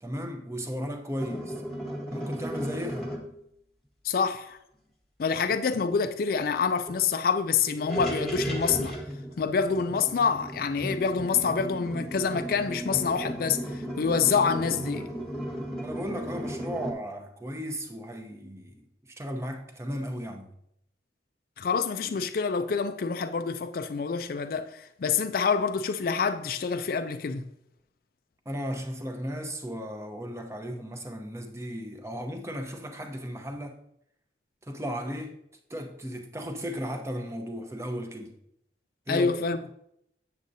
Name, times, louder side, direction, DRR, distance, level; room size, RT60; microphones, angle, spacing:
voice 1, 0.0-1.5 2.1-3.1 15.8-20.5 28.5-33.8 34.6-35.3 35.7-38.3 39.1-39.3, equal, 15° right, 0.8 m, -35 dB
sound 1, 1.2-3.3 5.9-6.0 6.3-6.4 6.9-7.0 7.7-16.9, equal, 5° left, 1.1 m, -35 dB
voice 2, 4.0-4.6 5.2-9.0 9.4-15.1 21.6-27.5 39.1-39.6, left 5 dB, 55° left, 0.4 m, -27 dB
8.0 x 7.4 x 2.7 m
head